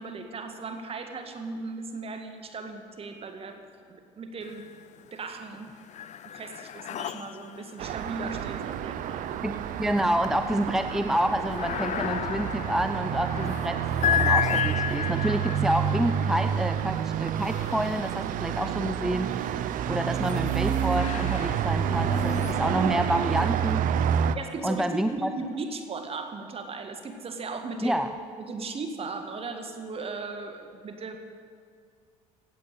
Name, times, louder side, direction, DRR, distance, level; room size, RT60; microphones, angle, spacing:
voice 1, 0.0-4.6 5.1-5.7 6.2-9.3 24.3-28.0 28.4-31.2, right 4 dB, 40° right, 6 dB, 1.9 m, -37 dB
sound 1, 4.4-5.1 5.4-18.6 19.3-23.7, left 9 dB, 50° left, 0.6 m, -34 dB
Traffic noise roadway noise, 7.8-24.4, right 9 dB, 60° right, 0.7 m, -29 dB
voice 2, 9.4-23.9 24.6-25.3 27.8-28.1, right 1 dB, 5° right, 8 dB, 0.5 m, -28 dB
16.0 x 8.5 x 8.5 m, 2.2 s
supercardioid pair, 80°, 16 cm